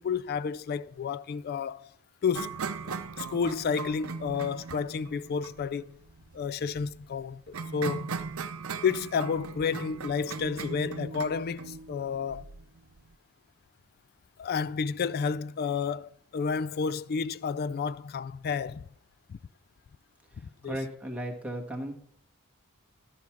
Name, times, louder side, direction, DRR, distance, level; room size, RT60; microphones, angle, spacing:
voice 1, 0.0-1.9 2.2-6.0 6.3-8.1 8.8-12.5 14.4-18.9 19.3-19.4 20.6-20.8, left 6 dB, 45° left, 0.3 m, -31 dB
sound 1, 2.3-13.2, right 5 dB, 70° right, 0.6 m, -39 dB
voice 2, 20.7-21.9, right 1 dB, 5° right, 1.4 m, -35 dB
13.0 x 5.8 x 4.7 m
head